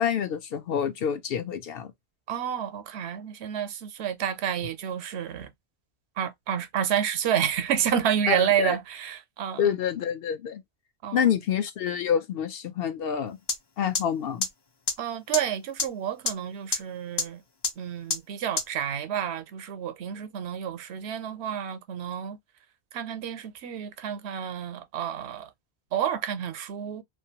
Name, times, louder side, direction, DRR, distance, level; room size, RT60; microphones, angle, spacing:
voice 1, 0.0-1.9 8.3-8.8 9.6-10.6 11.1-13.4 13.8-14.5, left 8 dB, 70° left, 0.8 m, -27 dB
voice 2, 2.3-5.5 6.2-9.7 11.0-11.2 15.0-17.4 17.8-22.4 22.9-25.5 25.9-27.0, right 9 dB, 85° right, 0.9 m, -29 dB
sound 1, 13.5-13.6 13.9-14.0 14.4-14.5 14.9-15.0 15.3-15.4 15.8-15.9 16.3-16.4 16.7-16.8 17.2-17.3 17.6-17.7 18.1-18.2 18.6-18.7, left 3 dB, 45° left, 0.3 m, -24 dB
2.5 x 2.3 x 2.7 m
omnidirectional pair, 1.1 m